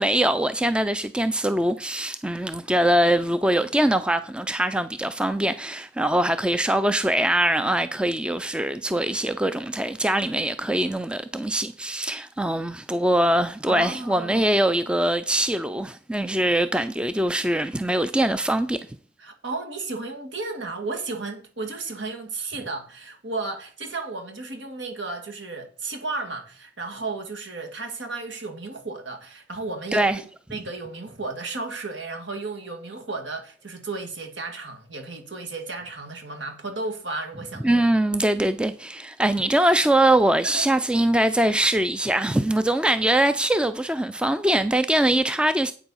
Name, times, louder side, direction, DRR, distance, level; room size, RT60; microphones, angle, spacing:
voice 1, 0.0-18.8 29.9-30.2 37.6-45.7, right 1 dB, 5° right, 0.3 m, -22 dB
voice 2, 13.7-14.5 19.2-30.1 30.5-37.9 40.4-40.7, right 3 dB, 75° right, 2.0 m, -33 dB
8.4 x 7.0 x 5.6 m
head